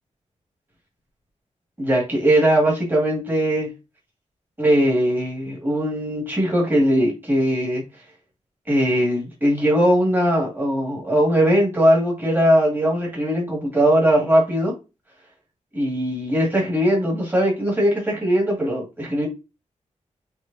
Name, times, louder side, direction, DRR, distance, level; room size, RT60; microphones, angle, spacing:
voice 1, 1.8-3.7 4.6-7.8 8.7-14.7 15.7-19.3, equal, 15° right, -3 dB, 1.9 m, -20 dB
6.2 x 3.2 x 2.6 m, 0.28 s
wide cardioid pair, 135°, 13 cm